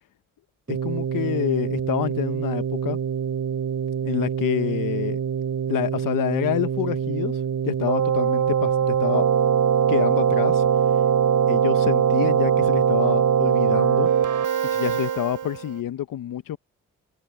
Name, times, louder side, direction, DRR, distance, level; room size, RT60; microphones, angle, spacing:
voice 1, 0.7-3.0 4.0-5.2 5.7-9.2 9.9-10.7 11.5-14.1 14.6-16.6, left 12 dB, 75° left, 1.0 m, -27 dB
Keyboard (musical), 0.7-15.7, right 8 dB, 65° right, 3.8 m, -22 dB
supercardioid pair, 45°, 34 cm